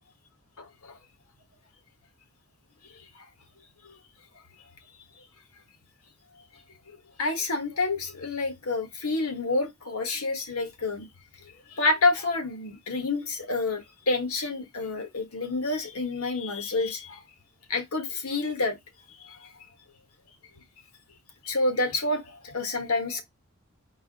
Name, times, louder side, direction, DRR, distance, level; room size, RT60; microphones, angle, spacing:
voice 1, 0.6-1.0 6.9-11.1 11.7-17.2 17.7-18.8 19.2-19.5 21.4-23.2, left 3 dB, 80° left, 1.4 m, -28 dB
4.7 x 2.6 x 4.1 m
head